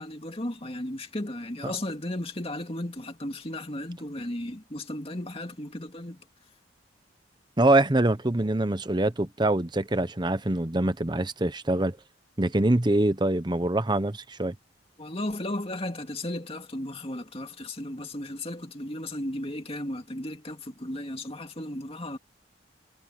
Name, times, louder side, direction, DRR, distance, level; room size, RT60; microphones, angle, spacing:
voice 1, 0.0-6.2 15.0-22.2, left 1 dB, 30° left, 2.4 m, -35 dB
voice 2, 7.6-12.0 12.4-14.5, right 1 dB, 25° right, 0.9 m, -24 dB
head